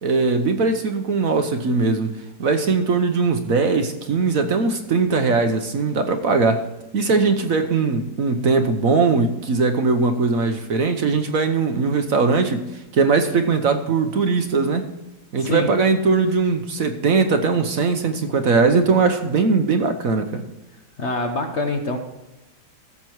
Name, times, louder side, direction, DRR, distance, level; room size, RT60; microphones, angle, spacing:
voice 1, 0.0-2.1 2.4-6.6 6.9-12.6 12.9-14.8 15.3-20.4, right 4 dB, 55° right, 7 dB, 1.2 m, -20 dB
voice 2, 15.4-15.7 21.0-22.0, left 2 dB, 50° left, 5 dB, 1.1 m, -25 dB
15.0 x 7.1 x 4.6 m, 1.0 s
omnidirectional pair, 1.9 m